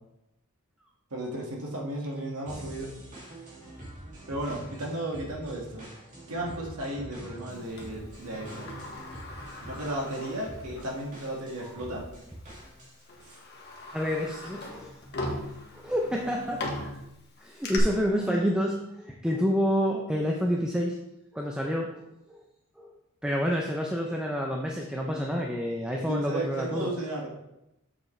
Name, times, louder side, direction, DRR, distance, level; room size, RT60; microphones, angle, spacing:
voice 1, 1.1-2.9 4.3-5.9 6.3-8.7 9.6-12.1 13.2-13.4 26.1-27.3, right 1 dB, 85° right, -2 dB, 1.8 m, -34 dB
sound 1, 2.5-13.1, right 1 dB, 35° right, 2.5 m, -45 dB
Sliding door, 7.8-11.0 11.4-11.5 12.4-12.6 13.1-17.8, left 2 dB, 50° left, 1.3 m, -39 dB
voice 2, 13.9-14.9 15.7-16.7 17.4-21.0 21.3-22.0 22.3-22.4 22.8-22.9 23.2-26.9, equal, 5° right, 0 dB, 0.5 m, -28 dB
7.3 x 6.6 x 3.2 m, 0.88 s
head